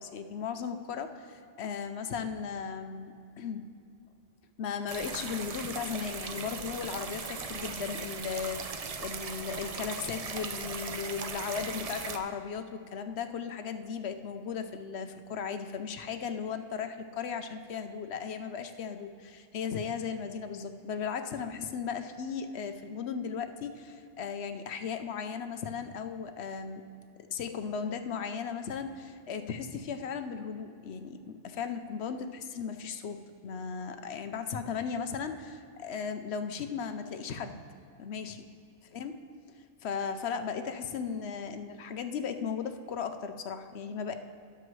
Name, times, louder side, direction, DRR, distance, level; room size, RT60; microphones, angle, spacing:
voice 1, 0.0-3.6 4.6-26.8 27.3-37.6 38.0-38.5 38.9-39.2 39.8-44.1, left 6 dB, 65° left, 8 dB, 0.9 m, -36 dB
sound 1, 4.9-12.2, right 5 dB, 50° right, 0.4 m, -38 dB
12.5 x 11.5 x 3.1 m, 2.6 s
omnidirectional pair, 1.3 m